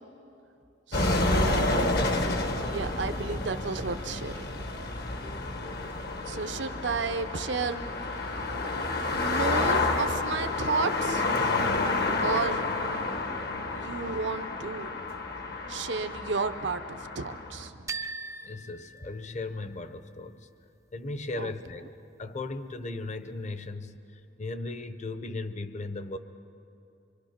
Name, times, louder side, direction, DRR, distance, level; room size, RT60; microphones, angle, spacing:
sound 1, 0.9-17.7, left 2 dB, 60° left, 1.3 m, -30 dB
voice 1, 0.9-1.9 2.6-4.6 6.3-7.8 9.1-11.8 12.2-12.6 13.7-14.9 15.7-17.9 21.4-21.5, right 4 dB, 80° right, 9 dB, 0.7 m, -32 dB
sound 2, 17.9-19.8, right 3 dB, 15° right, 0.4 m, -40 dB
voice 2, 18.4-20.5 20.9-21.9 22.2-26.2, left 2 dB, 40° left, 11 dB, 0.8 m, -37 dB
25.0 x 23.5 x 5.8 m, 2.8 s
head